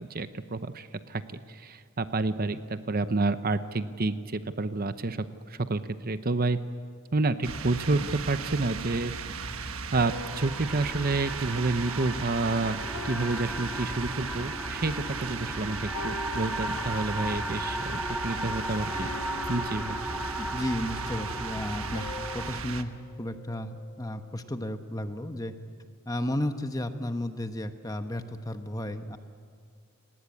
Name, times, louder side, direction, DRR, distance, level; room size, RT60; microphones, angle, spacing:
voice 1, 0.0-6.6 7.1-19.1 19.5-20.0, right 3 dB, 45° right, 11 dB, 0.8 m, -29 dB
sound 1, 7.4-22.8, right 5 dB, 80° right, 1.2 m, -37 dB
sound 2, 7.7-9.0 9.9-12.5 12.9-14.7 15.2-15.5 15.9-17.5 18.0-18.2 18.9-20.8 21.9-24.3, left 2 dB, 75° left, 2.7 m, -46 dB
sound 3, 10.1-22.6, equal, 5° right, 1.9 m, -36 dB
voice 2, 20.4-22.1 22.3-25.5 26.1-29.2, left 1 dB, 15° left, 8 dB, 1.1 m, -33 dB
30.0 x 18.5 x 8.6 m, 2.1 s
head